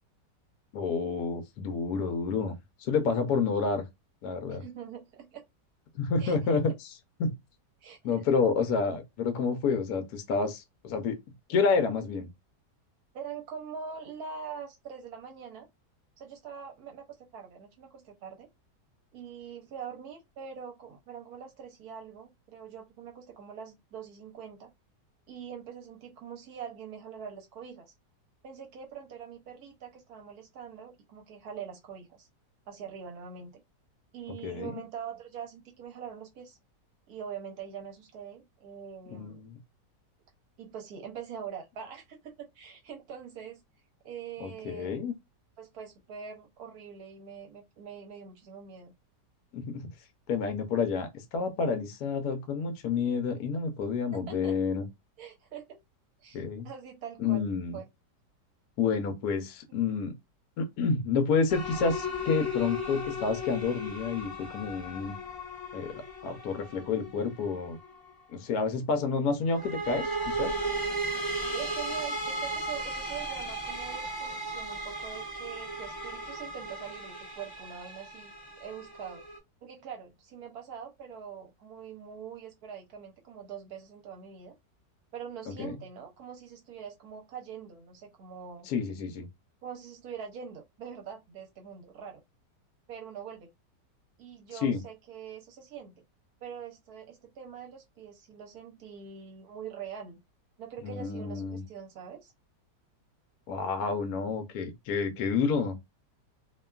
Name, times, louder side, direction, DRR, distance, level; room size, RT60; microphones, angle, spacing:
voice 1, 0.7-2.5 2.8-3.8 4.2-4.6 5.9-6.7 7.2-7.3 8.0-11.2 11.5-12.3 34.4-34.8 39.1-39.6 44.4-45.1 49.5-49.9 50.3-54.8 56.3-56.7 57.2-57.8 58.8-60.1 60.6-65.1 65.7-67.8 68.3-70.5 85.6-85.8 88.7-89.3 94.5-94.8 100.8-101.6 103.5-105.8, left 5 dB, 70° left, 1.0 m, -29 dB
voice 2, 4.5-5.4 6.2-6.6 7.8-8.3 13.1-15.7 16.2-18.5 19.1-24.7 25.3-27.9 28.4-32.3 32.7-33.6 34.1-36.6 37.1-39.4 40.6-43.6 44.0-45.0 45.6-48.9 54.1-54.5 55.2-55.8 56.2-57.9 59.4-60.0 71.4-79.2 79.6-84.6 85.1-88.7 89.6-92.2 92.9-93.5 94.2-96.0 96.4-100.2 100.6-102.3, right 7 dB, 70° right, 1.1 m, -43 dB
sound 1, 61.5-68.0 69.5-79.4, equal, 30° left, 0.4 m, -36 dB
2.8 x 2.3 x 2.3 m
omnidirectional pair, 1.8 m